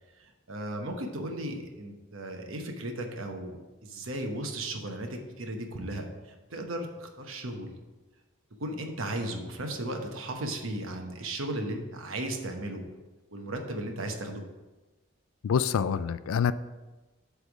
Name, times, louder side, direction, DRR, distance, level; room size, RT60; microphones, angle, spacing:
voice 1, 0.5-3.6 3.8-7.8 8.6-12.8 13.3-14.4, right 1 dB, 75° right, 4 dB, 1.0 m, -35 dB
voice 2, 15.4-16.5, left 7 dB, 85° left, 15 dB, 0.3 m, -26 dB
8.0 x 3.5 x 6.0 m, 1.2 s
head